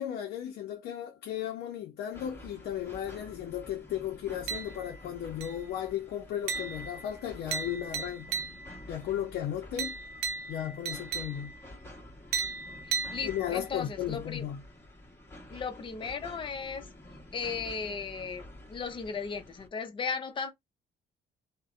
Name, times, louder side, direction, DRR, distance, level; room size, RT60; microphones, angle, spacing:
voice 1, 0.0-8.3 8.9-10.0 10.5-11.5 13.2-14.6, left 10 dB, 70° left, 0.6 m, -35 dB
sound 1, 2.1-19.7, left 1 dB, 15° left, 1.3 m, -49 dB
sound 2, 4.5-5.0 5.4-5.8 6.5-8.9 9.8-11.7 12.3-13.8, right 5 dB, 85° right, 0.6 m, -36 dB
voice 2, 12.8-14.5 15.5-16.8 17.3-20.5, left 5 dB, 30° left, 0.6 m, -36 dB
2.5 x 2.1 x 2.4 m
cardioid pair, 110°, 17 cm